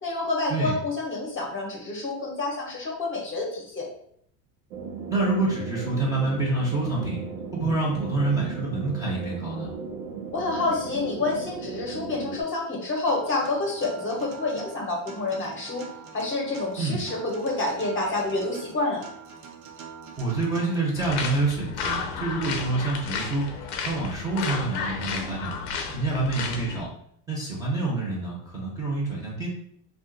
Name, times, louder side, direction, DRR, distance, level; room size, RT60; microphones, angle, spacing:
voice 1, 0.0-3.9 10.3-15.8 16.1-19.0, left 2 dB, 25° left, -1 dB, 0.9 m, -28 dB
sound 1, 4.7-12.4, right 5 dB, 90° right, 0.8 m, -36 dB
voice 2, 5.1-7.2 7.5-9.7 16.8-17.0 20.2-23.5 23.8-25.5 25.9-26.9 27.3-29.5, right 3 dB, 10° right, -5 dB, 0.8 m, -27 dB
Acoustic guitar, 13.1-21.1, right 6 dB, 40° right, 0.6 m, -44 dB
sound 2, 21.0-26.8, left 5 dB, 90° left, 0.7 m, -32 dB
2.5 x 2.4 x 3.8 m, 0.67 s
supercardioid pair, 120°, 45 cm